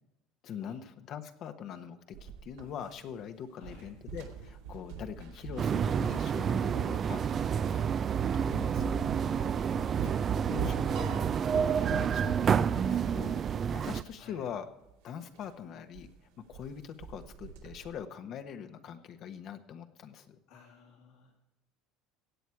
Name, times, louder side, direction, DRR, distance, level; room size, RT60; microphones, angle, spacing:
voice 1, 0.4-9.0 10.0-11.2 11.9-13.4 13.7-14.7 15.0-16.1 16.5-20.4, left 8 dB, 55° left, 7 dB, 1.2 m, -43 dB
sound 1, 2.1-3.3 3.6-6.6 7.1-7.2 7.6-7.8 8.1-14.2 14.5-14.6 14.8-14.9 15.3-15.5 15.9-16.1 16.3-16.7 17.0-17.9, right 5 dB, 85° right, 2.5 m, -42 dB
voice 2, 3.5-3.9 8.5-9.1 10.2-11.2 14.2-14.5 20.5-21.3, left 5 dB, 75° left, -3 dB, 2.9 m, -54 dB
sound 2, 5.6-14.0, right 7 dB, 40° right, 0.5 m, -29 dB
Piano, 11.0-13.4, right 8 dB, 65° right, 2.0 m, -50 dB
16.0 x 8.3 x 4.7 m, 0.93 s
supercardioid pair, 95°, 0 cm